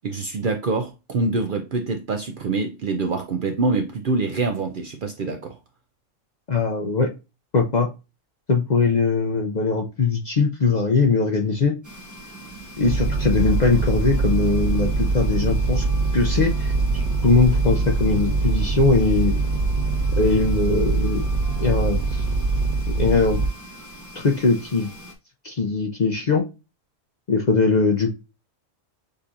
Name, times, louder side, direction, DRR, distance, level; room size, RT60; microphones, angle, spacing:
voice 1, 0.0-5.6, right 3 dB, 60° right, 0.6 m, -25 dB
voice 2, 6.5-7.1 7.5-7.9 8.5-11.7 12.8-15.8 16.1-19.3 20.2-21.2 21.6-22.2 23.0-23.4 24.1-24.9 25.4-26.4 27.3-28.1, left 4 dB, 45° left, 0.6 m, -21 dB
sound 1, 11.8-25.1, equal, 20° right, 0.6 m, -42 dB
sound 2, 12.8-23.5, right 3 dB, 35° right, 1.3 m, -23 dB
6.4 x 2.8 x 2.5 m
omnidirectional pair, 1.3 m